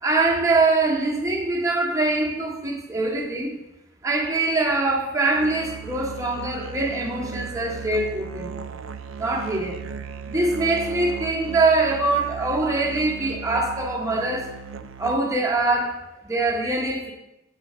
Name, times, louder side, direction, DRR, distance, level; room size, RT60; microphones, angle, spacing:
voice 1, 0.0-3.6 4.0-8.6 9.2-9.8 10.3-14.5 15.0-17.1, right 2 dB, 15° right, 0 dB, 1.1 m, -23 dB
Musical instrument, 5.3-15.5, right 6 dB, 60° right, 0.5 m, -36 dB
8.3 x 3.9 x 6.6 m, 0.92 s
head